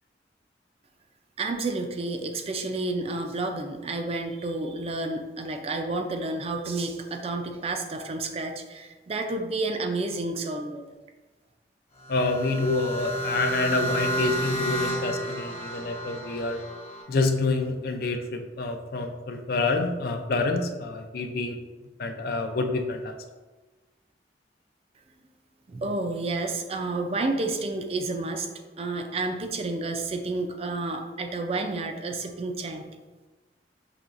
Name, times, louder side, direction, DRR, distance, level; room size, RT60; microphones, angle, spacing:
voice 1, 1.4-10.9 25.7-32.8, right 2 dB, 35° right, 5 dB, 0.4 m, -30 dB
sound 1, 12.0-17.0, right 1 dB, 35° left, 0.9 m, -31 dB
voice 2, 12.1-16.6 17.1-21.6 22.0-23.2, left 3 dB, 55° left, 5 dB, 0.4 m, -27 dB
6.0 x 3.0 x 2.5 m, 1.2 s
head